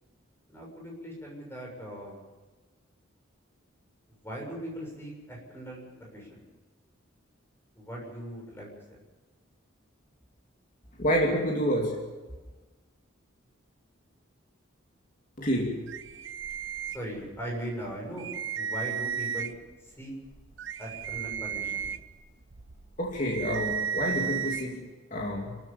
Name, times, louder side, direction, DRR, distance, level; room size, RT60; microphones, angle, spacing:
voice 1, 0.5-2.2 4.2-6.5 7.7-9.0 16.9-19.6 19.8-20.1 20.8-21.9, right 1 dB, 10° left, -1 dB, 7.0 m, -39 dB
voice 2, 11.0-12.0 15.4-15.8 23.0-25.6, equal, 40° left, -1 dB, 2.8 m, -28 dB
sound 1, 15.9-17.5 17.8-17.9 18.2-19.7 20.3-24.6, right 8 dB, 65° right, 1.0 m, -34 dB
28.5 x 13.5 x 7.2 m, 1.2 s
head